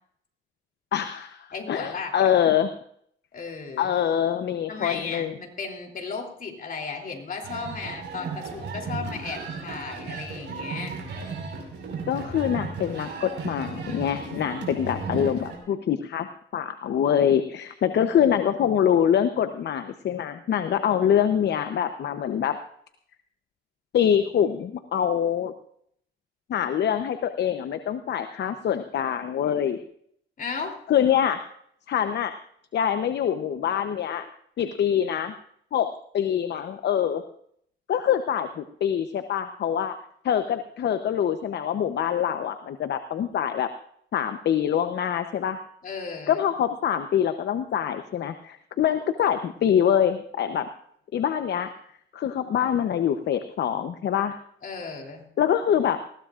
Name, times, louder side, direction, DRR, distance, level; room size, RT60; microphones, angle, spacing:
voice 1, 0.9-2.7 3.8-5.3 12.1-16.3 16.5-22.6 23.9-25.5 26.5-29.8 30.9-31.4 31.9-32.3 32.7-34.2 34.6-35.3 35.7-35.9 36.1-37.2 37.9-39.9 40.2-43.7 44.1-45.6 46.3-50.7 51.1-51.7 52.1-54.4 55.4-56.0, left 9 dB, 60° left, 9 dB, 0.9 m, -24 dB
voice 2, 1.5-2.1 3.3-3.9 4.7-11.0 30.4-30.8 45.8-46.4 54.6-55.3, left 4 dB, 45° left, 2 dB, 3.2 m, -35 dB
sound 1, 7.4-15.6, right 4 dB, 65° right, 5.2 m, -35 dB
20.0 x 16.0 x 2.5 m, 0.66 s
cardioid pair, 90°, 20 cm